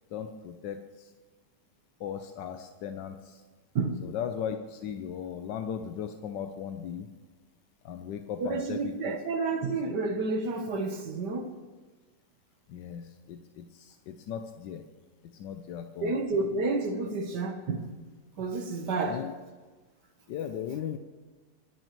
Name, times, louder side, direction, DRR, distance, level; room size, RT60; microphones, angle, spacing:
voice 1, 0.1-0.8 2.0-3.3 4.0-7.1 7.8-8.8 9.0-9.1 12.7-14.8 15.4-16.1 19.0-19.3 20.3-21.0, left 8 dB, 90° left, 7 dB, 1.4 m, -37 dB
voice 2, 8.4-11.5 16.0-17.9 18.4-19.2, right 3 dB, 75° right, 5 dB, 1.7 m, -30 dB
25.0 x 11.0 x 3.1 m, 1.4 s
omnidirectional pair, 1.9 m